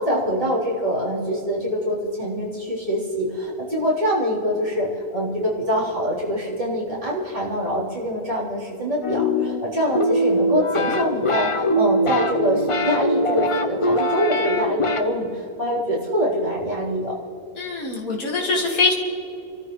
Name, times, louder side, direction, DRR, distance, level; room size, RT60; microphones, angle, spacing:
voice 1, 0.0-17.1, equal, 30° right, -7 dB, 3.9 m, -24 dB
sound 1, 9.0-15.0, equal, 30° left, 0.6 m, -22 dB
voice 2, 17.6-18.9, left 3 dB, 80° left, -1 dB, 2.5 m, -22 dB
29.5 x 13.0 x 3.2 m, 2.9 s
omnidirectional pair, 1.4 m